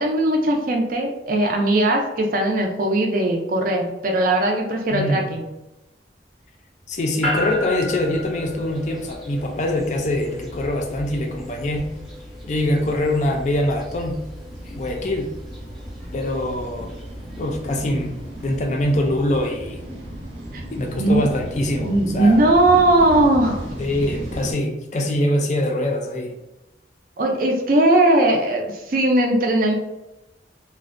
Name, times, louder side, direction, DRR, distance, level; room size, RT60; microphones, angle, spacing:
voice 1, 0.0-5.4 20.5-20.6 21.0-21.2 21.8-23.6 27.2-29.7, right 1 dB, 50° right, 2 dB, 0.4 m, -19 dB
voice 2, 4.9-5.3 6.9-11.9 12.4-14.2 14.7-15.3 16.1-16.9 17.4-18.2 18.4-19.8 20.7-22.4 23.8-26.4, left 1 dB, 40° left, 3 dB, 0.3 m, -24 dB
sound 1, 6.8-24.5, right 1 dB, 85° right, 0.7 m, -37 dB
sound 2, 7.2-21.5, left 1 dB, ahead, 0.6 m, -35 dB
2.5 x 2.1 x 2.4 m, 0.97 s
head